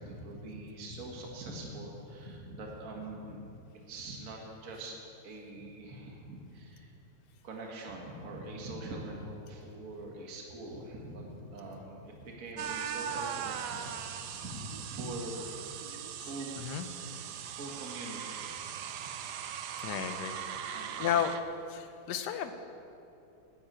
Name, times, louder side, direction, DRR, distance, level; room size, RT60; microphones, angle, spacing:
voice 1, 0.0-3.5 3.9-5.0 5.2-6.9 7.4-15.6 16.2-16.8 17.4-18.8 19.6-20.0 20.7-21.2, right 2 dB, 50° right, 0 dB, 1.7 m, -43 dB
sound 1, 12.6-21.4, right 8 dB, 70° right, 1.1 m, -39 dB
voice 2, 19.8-20.4 21.0-21.3 21.7-22.5, left 9 dB, 65° left, 8 dB, 1.3 m, -32 dB
11.5 x 7.2 x 8.8 m, 2.7 s
omnidirectional pair, 2.1 m